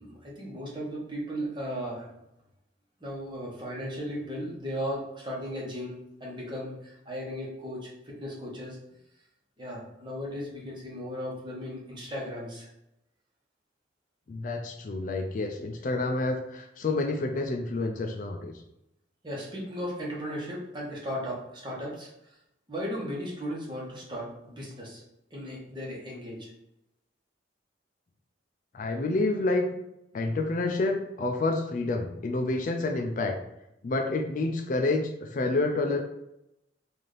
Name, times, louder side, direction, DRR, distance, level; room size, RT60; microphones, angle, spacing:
voice 1, 0.0-2.1 3.0-8.8 9.6-12.7 19.2-22.4 22.7-25.0 25.3-26.5, equal, 25° right, -4 dB, 1.0 m, -36 dB
voice 2, 14.3-18.5 28.7-29.7 30.1-33.4 33.8-36.0, left 2 dB, 45° left, 4 dB, 0.3 m, -28 dB
4.0 x 2.5 x 3.3 m, 0.85 s
head